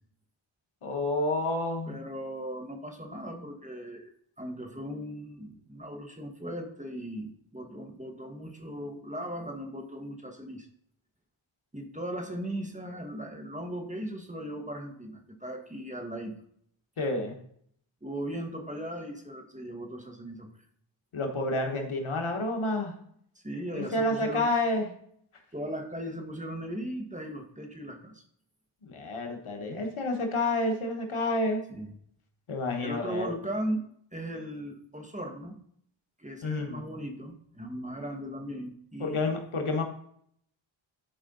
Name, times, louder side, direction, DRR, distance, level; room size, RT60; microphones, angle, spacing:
voice 1, 0.8-2.0 17.0-17.4 21.1-22.9 23.7-24.9 28.8-31.6 32.5-33.3 36.4-36.9 39.0-39.8, left 2 dB, 85° left, 3 dB, 1.5 m, -29 dB
voice 2, 1.9-10.7 11.7-16.4 18.0-20.5 23.3-24.5 25.5-28.2 31.7-31.9 32.8-33.9 34.1-35.6 36.2-39.3, right 1 dB, 15° right, 3 dB, 1.5 m, -38 dB
12.0 x 4.8 x 3.9 m, 0.66 s
wide cardioid pair, 55°, 48 cm